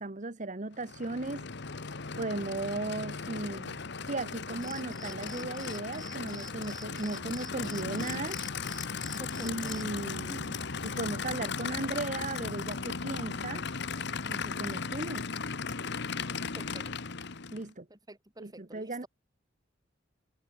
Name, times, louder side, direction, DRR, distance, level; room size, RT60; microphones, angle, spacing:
voice 1, 0.0-1.5 2.2-8.4 9.4-13.6 14.3-15.3 17.5-17.9 18.4-19.0, right 2 dB, 40° right, 1.2 m, -36 dB
Aircraft / Idling, 0.7-17.7, left 5 dB, 60° left, 1.3 m, -37 dB
sound 1, 4.6-10.0, equal, ahead, 3.0 m, -49 dB
voice 2, 9.2-9.7 16.6-16.9 17.9-19.1, right 1 dB, 20° right, 5.5 m, -49 dB
head